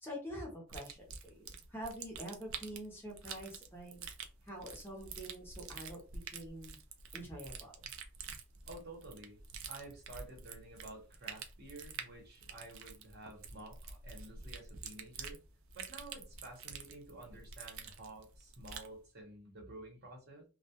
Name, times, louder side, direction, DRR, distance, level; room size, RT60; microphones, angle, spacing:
voice 1, 0.0-4.1 4.4-6.8 7.1-7.7, equal, 10° left, -1 dB, 0.6 m, -46 dB
sound 1, 0.7-18.9, right 6 dB, 65° right, 0.4 m, -48 dB
voice 2, 8.7-9.4 9.7-15.4 15.7-20.4, right 2 dB, 50° right, 1 dB, 0.9 m, -51 dB
2.2 x 2.1 x 2.8 m, 0.35 s
head